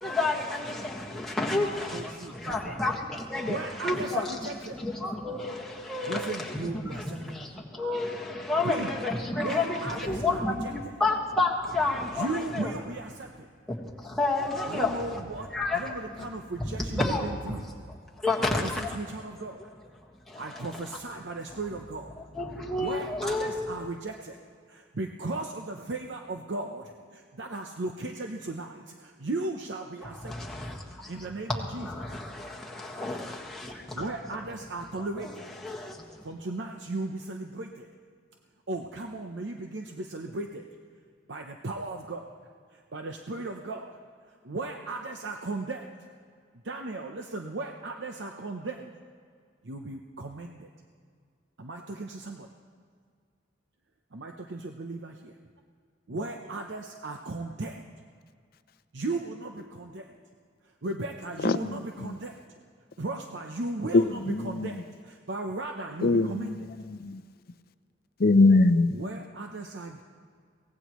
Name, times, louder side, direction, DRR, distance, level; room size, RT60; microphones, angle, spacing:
voice 1, 0.0-12.7 13.7-15.2 15.5-16.3 16.6-17.6 18.2-19.0 20.3-20.9 21.5-21.6 22.2-23.7 30.2-31.3 31.7-34.0 35.0-36.2, left 2 dB, ahead, -4 dB, 1.6 m, -31 dB
voice 2, 1.5-2.8 3.5-4.8 6.1-7.2 8.6-8.9 9.3-10.9 12.1-13.5 14.7-17.7 18.4-19.6 20.4-22.2 22.7-24.4 24.7-30.5 31.1-32.2 33.9-35.5 36.2-37.9 38.7-40.6 41.3-42.4 42.7-43.9 44.3-45.9 46.6-48.9 49.6-50.7 51.6-52.5 54.1-55.1 56.1-57.8 58.9-60.1 60.6-62.6 63.0-66.7 68.9-70.0, right 2 dB, 70° right, 3 dB, 0.8 m, -36 dB
voice 3, 63.9-64.7 66.0-67.2 68.2-69.0, left 3 dB, 55° left, 12 dB, 0.5 m, -22 dB
23.5 x 17.5 x 3.1 m, 2.1 s
head